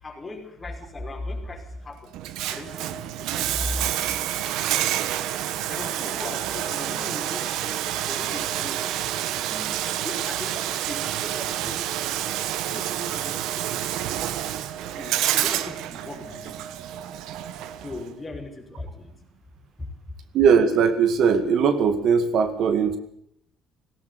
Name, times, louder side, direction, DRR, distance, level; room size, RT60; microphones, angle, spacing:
voice 1, 0.0-2.1 2.5-3.9 5.7-9.0 9.3-9.7 10.0-11.8 12.6-13.9 15.0-16.9 17.8-19.1 19.8-19.9, left 2 dB, 20° left, 1 dB, 5.4 m, -38 dB
Bathtub (filling or washing), 2.1-18.1, right 12 dB, 80° right, 1.2 m, -28 dB
voice 2, 20.3-23.0, right 6 dB, 60° right, 10 dB, 2.0 m, -19 dB
18.5 x 17.5 x 8.4 m, 0.69 s
cardioid pair, 115°, 0 cm